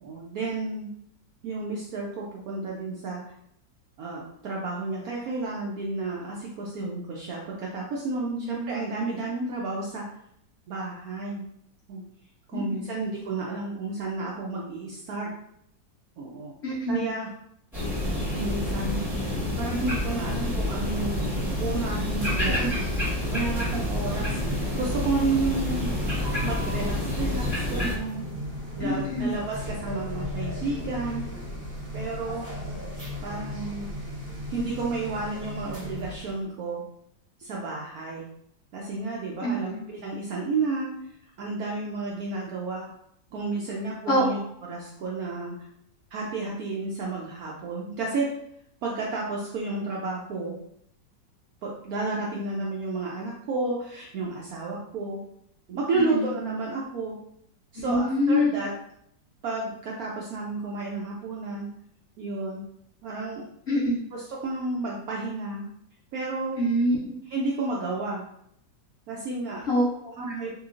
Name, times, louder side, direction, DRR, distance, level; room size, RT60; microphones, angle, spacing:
voice 1, 0.0-0.9 1.4-3.2 4.0-10.0 10.7-11.4 11.9-12.0 12.5-15.3 16.2-16.5 16.9-17.3 18.3-19.0 19.6-21.3 21.6-22.6 23.3-24.4 24.8-25.9 26.4-28.3 28.8-31.2 31.9-32.5 33.2-33.9 34.5-36.8 37.4-38.2 38.7-40.9 41.4-42.9 43.3-44.4 44.7-45.6 46.1-48.3 48.8-50.5 51.6-55.2 55.7-57.2 57.7-58.7 59.4-61.7 62.2-62.6 63.0-63.4 64.1-65.7 66.1-66.6 67.3-68.2 69.1-69.7 70.2-70.5, right 3 dB, 75° right, -3 dB, 0.8 m, -31 dB
voice 2, 8.3-8.7 12.5-13.0 16.6-17.1 22.5-22.7 28.8-29.3 39.4-39.8 44.1-44.4 56.1-56.3 57.9-58.5 63.7-64.0 66.6-67.0 69.7-70.1, equal, 70° left, -8 dB, 0.6 m, -25 dB
sound 1, 17.7-27.9, left 1 dB, ahead, 0.9 m, -28 dB
sound 2, 20.8-36.4, left 1 dB, 40° right, 0.7 m, -36 dB
3.0 x 2.8 x 2.4 m, 0.70 s
omnidirectional pair, 2.0 m